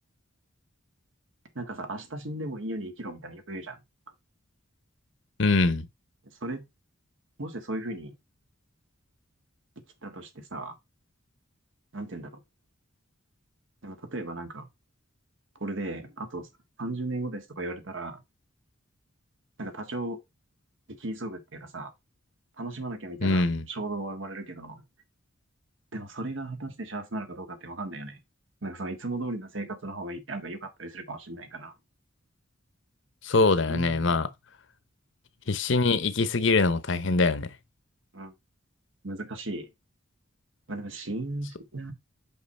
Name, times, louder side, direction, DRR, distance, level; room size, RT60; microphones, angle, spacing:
voice 1, 1.5-3.8 6.4-6.6 7.4-8.1 10.0-10.8 11.9-12.4 13.8-14.7 15.6-16.5 16.8-18.2 19.6-20.2 21.0-21.9 22.6-24.8 25.9-28.2 28.6-31.7 33.7-34.2 38.1-38.3 39.0-39.7 40.7-41.9, right 2 dB, 70° right, 1.6 m, -36 dB
voice 2, 5.4-5.9 23.2-23.6 33.2-34.3 35.5-37.5, left 3 dB, 65° left, 0.8 m, -23 dB
5.8 x 5.6 x 4.2 m
head